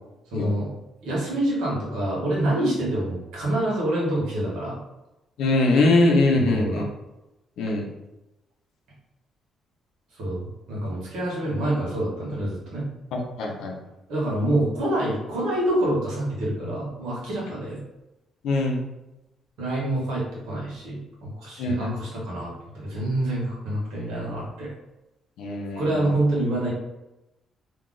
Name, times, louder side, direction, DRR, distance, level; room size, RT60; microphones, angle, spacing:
voice 1, 0.3-0.7 1.0-4.8 6.3-6.9 10.2-12.9 14.1-17.8 19.6-24.7 25.8-26.7, right 1 dB, 90° right, -5 dB, 1.1 m, -26 dB
voice 2, 5.4-6.8 7.6-7.8 13.1-13.8 18.4-18.8 21.6-21.9 25.4-26.1, left 2 dB, 85° left, 0 dB, 0.6 m, -22 dB
2.7 x 2.0 x 3.7 m, 0.96 s
cardioid pair, 90°, 0 cm